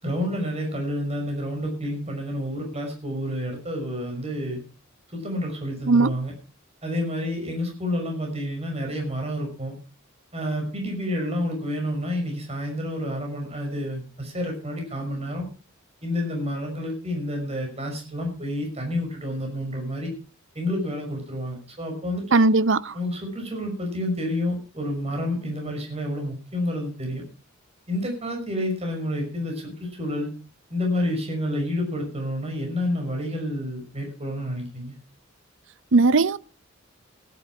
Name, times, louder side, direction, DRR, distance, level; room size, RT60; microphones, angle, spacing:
voice 1, 0.0-4.6 5.1-6.3 6.8-9.8 10.3-15.5 16.0-20.1 20.5-22.5 22.9-27.2 27.9-30.3 30.7-35.0, left 1 dB, 30° right, 5.8 m, -29 dB
voice 2, 22.3-22.8 35.9-36.4, right 3 dB, 65° right, 0.7 m, -18 dB
17.5 x 11.5 x 4.8 m
head